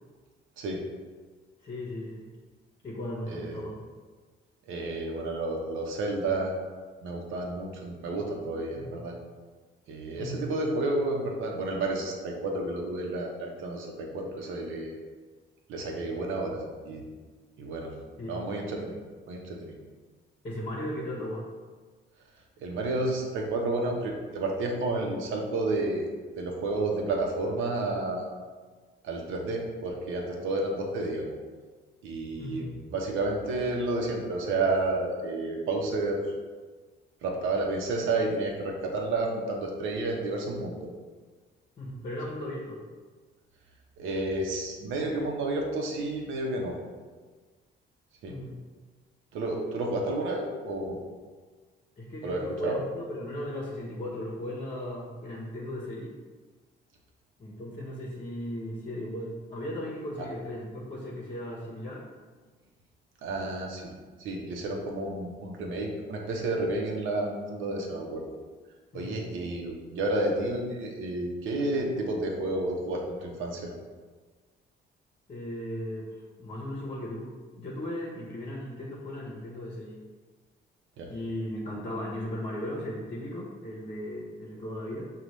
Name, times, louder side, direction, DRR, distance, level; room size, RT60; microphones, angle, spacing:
voice 1, 1.6-2.3 2.8-3.7 8.7-9.0 10.2-10.5 18.2-18.4 20.4-21.5 32.4-32.7 41.8-42.8 48.3-48.6 52.0-56.1 57.4-62.1 68.9-69.2 75.3-77.3 77.6-80.0 81.1-85.0, left 1 dB, 35° left, -4 dB, 0.9 m, -36 dB
voice 2, 3.3-3.6 4.7-6.5 7.0-9.1 9.9-14.9 15.7-17.0 17.6-17.9 18.3-19.0 19.3-19.8 22.6-26.1 26.4-28.3 29.0-31.3 32.0-36.2 37.2-40.9 44.0-46.8 48.2-48.3 49.3-51.0 52.2-52.8 63.2-63.9 64.2-68.2 68.9-73.7 81.0-81.1, right 2 dB, 80° right, 0 dB, 0.8 m, -31 dB
5.1 x 2.4 x 3.1 m, 1.4 s
cardioid pair, 90°, 20 cm